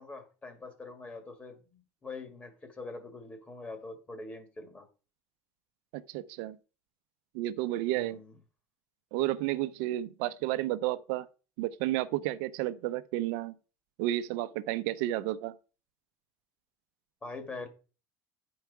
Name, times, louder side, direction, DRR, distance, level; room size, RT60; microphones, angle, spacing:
voice 1, 0.0-4.9 8.0-8.3 17.2-17.7, left 3 dB, 20° left, 1.8 m, -44 dB
voice 2, 5.9-6.6 7.3-8.2 9.1-11.3 11.6-13.5 14.0-15.5, right 15 dB, 75° right, 0.6 m, -31 dB
10.5 x 4.7 x 4.7 m
cardioid pair, 130°, 7 cm